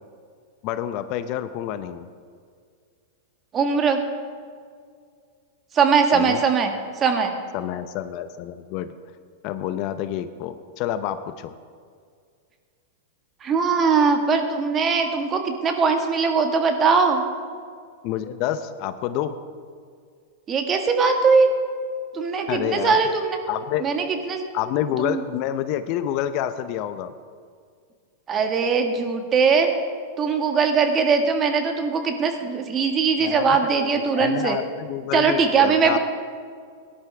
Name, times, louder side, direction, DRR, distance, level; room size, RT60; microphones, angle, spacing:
voice 1, 0.6-2.1 6.1-6.4 7.5-8.9 9.4-11.5 18.0-19.4 22.5-23.0 23.5-23.8 24.5-27.1 33.2-33.6 33.9-36.0, left 11 dB, 50° left, 11 dB, 0.7 m, -28 dB
voice 2, 3.5-4.0 5.7-6.7 7.0-7.3 13.4-17.2 20.5-21.5 22.1-23.4 23.8-24.5 25.0-25.2 28.3-29.7 30.2-34.6 35.1-36.0, right 5 dB, 30° right, 4 dB, 1.7 m, -20 dB
17.5 x 11.5 x 3.4 m, 2.1 s
hypercardioid pair, 110°, 0 cm